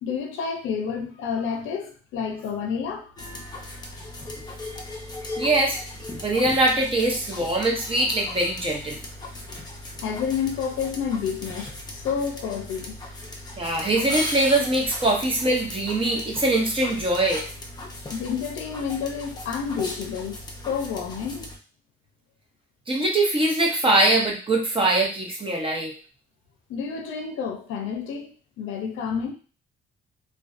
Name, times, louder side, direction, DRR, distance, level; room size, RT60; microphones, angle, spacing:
voice 1, 0.0-3.5 10.0-12.9 18.1-21.5 26.7-29.3, left 6 dB, 90° left, 4 dB, 0.5 m, -30 dB
sound 1, 3.2-21.6, left 1 dB, 20° left, 0.6 m, -37 dB
voice 2, 5.4-5.8 6.2-9.0 13.6-17.4 22.9-25.9, right 2 dB, 25° right, -1 dB, 0.8 m, -22 dB
2.5 x 2.2 x 2.4 m, 0.37 s
cardioid pair, 90°, 20 cm